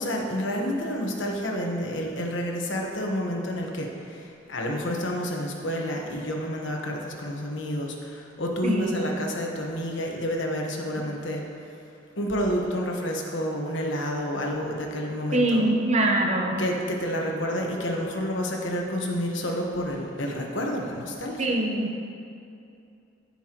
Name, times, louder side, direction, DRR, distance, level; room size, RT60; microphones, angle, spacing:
voice 1, 0.0-11.4 12.2-15.6 16.6-21.5, equal, 70° left, 0 dB, 1.2 m, -29 dB
voice 2, 8.6-9.2 15.3-16.6 21.4-22.0, right 1 dB, 35° right, 1 dB, 0.9 m, -23 dB
16.0 x 5.8 x 3.0 m, 2.6 s
head